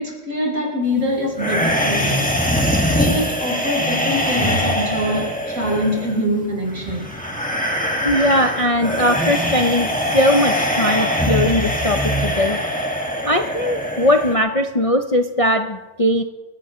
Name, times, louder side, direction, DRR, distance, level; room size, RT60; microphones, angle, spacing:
voice 1, 0.0-2.3 2.9-7.1, left 1 dB, 75° right, -2 dB, 5.3 m, -24 dB
sound 1, 1.4-14.3, equal, 5° left, 1.8 m, -22 dB
voice 2, 8.0-12.6 13.2-16.2, left 1 dB, 35° left, 5 dB, 0.6 m, -19 dB
25.5 x 16.0 x 3.1 m, 1.2 s
omnidirectional pair, 1.4 m